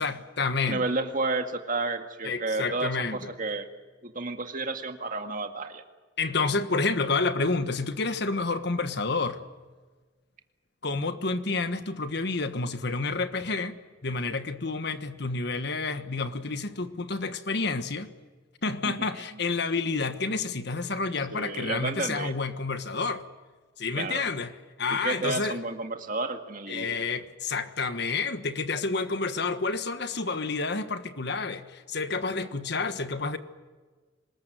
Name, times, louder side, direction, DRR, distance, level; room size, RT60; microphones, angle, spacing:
voice 1, 0.0-0.8 2.2-3.2 6.2-9.4 10.8-13.8 14.0-18.1 18.6-23.2 23.8-24.5 24.8-25.6 26.7-33.4, left 4 dB, 60° left, 10 dB, 1.4 m, -29 dB
voice 2, 0.7-3.7 4.0-5.8 18.8-19.4 21.3-22.3 23.9-24.2 24.9-27.0, right 3 dB, 45° right, 6 dB, 2.1 m, -31 dB
25.0 x 21.0 x 9.2 m, 1.4 s
head